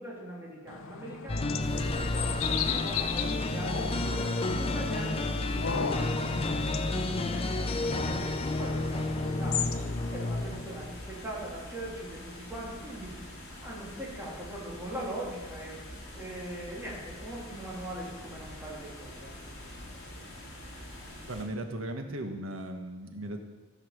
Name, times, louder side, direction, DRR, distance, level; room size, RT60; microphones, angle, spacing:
voice 1, 0.0-6.5 6.9-9.8 10.1-13.1 13.6-15.8 16.1-20.4, right 1 dB, 10° right, -5 dB, 3.1 m, -41 dB
sound 1, 0.7-10.2, left 7 dB, 85° left, 0.6 m, -37 dB
sound 2, 1.3-11.1, left 2 dB, 30° left, 0.6 m, -31 dB
sound 3, 1.6-21.4, left 1 dB, 55° left, 2.7 m, -45 dB
voice 2, 21.3-23.4, right 1 dB, 85° right, 4 dB, 1.4 m, -37 dB
14.0 x 5.9 x 6.7 m, 1.3 s
head